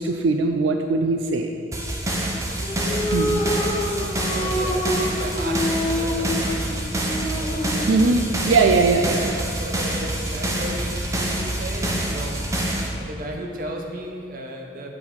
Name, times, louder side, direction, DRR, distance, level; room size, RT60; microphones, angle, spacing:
voice 1, 0.0-1.5 3.1-3.4 7.9-9.2, right 3 dB, 85° right, 5 dB, 0.4 m, -20 dB
sound 1, 1.7-12.9, right 1 dB, 15° right, 0.7 m, -26 dB
sound 2, 2.6-7.9, left 1 dB, 30° left, 1.1 m, -27 dB
voice 2, 2.8-8.4 9.2-12.5 13.0-14.9, right 1 dB, 50° right, 1 dB, 0.8 m, -36 dB
6.9 x 5.5 x 4.7 m, 2.4 s
head